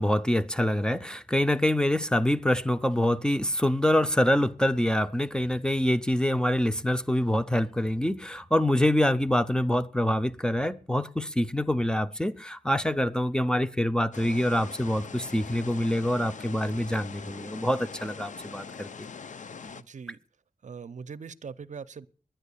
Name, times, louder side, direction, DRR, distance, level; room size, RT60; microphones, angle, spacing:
voice 1, 0.0-18.9, left 1 dB, 5° left, 0.5 m, -25 dB
sound 1, 14.1-19.8, left 5 dB, 65° left, 0.7 m, -42 dB
voice 2, 19.7-20.2 20.6-22.1, right 6 dB, 60° right, 0.6 m, -41 dB
10.5 x 10.5 x 8.4 m
wide cardioid pair, 130°, 14 cm